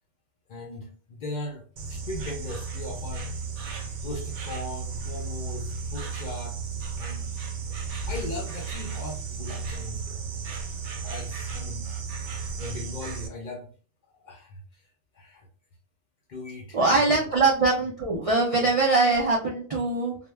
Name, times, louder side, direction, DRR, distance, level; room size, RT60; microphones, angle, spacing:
voice 1, 0.5-3.4 4.0-6.6 7.0-7.4 7.9-10.5 11.0-11.9 12.6-13.7 14.1-14.8 15.1-15.5 16.3-16.8 17.1-17.2, left 2 dB, 55° left, 1 dB, 0.5 m, -38 dB
Insect, 1.8-13.3, right 4 dB, 85° right, 0.9 m, -34 dB
voice 2, 16.7-20.2, right 3 dB, 55° right, -2 dB, 0.4 m, -22 dB
2.1 x 2.0 x 3.2 m, 0.41 s
omnidirectional pair, 1.1 m